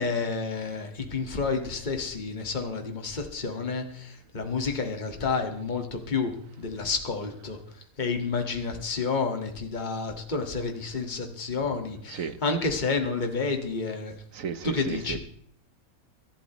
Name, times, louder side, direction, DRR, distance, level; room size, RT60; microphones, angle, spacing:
voice 1, 0.0-7.6 8.0-14.1 14.6-15.2, left 4 dB, 30° left, 4 dB, 1.9 m, -30 dB
voice 2, 14.3-15.2, right 6 dB, 65° right, 12 dB, 1.4 m, -33 dB
23.5 x 12.5 x 3.1 m, 0.64 s
omnidirectional pair, 1.5 m